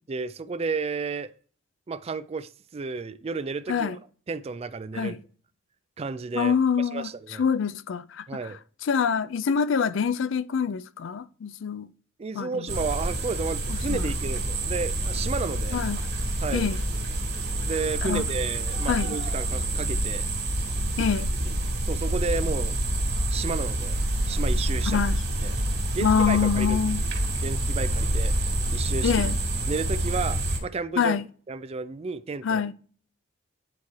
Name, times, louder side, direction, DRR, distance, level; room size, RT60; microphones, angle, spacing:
voice 1, 0.1-1.3 1.9-4.0 4.3-5.2 6.0-7.4 8.3-8.6 12.2-15.8 16.4-16.7 17.6-20.3 21.5-21.6 21.9-22.8 23.3-24.0 24.3-25.0 25.4-25.6 25.9-26.8 27.4-28.3 28.7-29.1 29.7-31.2 31.5-32.6, right 4 dB, 30° right, 0.3 m, -32 dB
voice 2, 6.3-7.1 7.4-8.5 8.8-11.9 12.3-12.8 13.7-14.1 15.7-16.0 16.5-16.8 18.0-18.2 18.9-19.2 21.0-21.3 24.9-25.2 26.0-27.0 29.0-29.4 31.0-31.3 32.4-32.7, left 6 dB, 65° left, 0.4 m, -25 dB
sound 1, 12.7-30.6, right 1 dB, 55° right, 2.0 m, -27 dB
9.4 x 3.2 x 4.2 m
head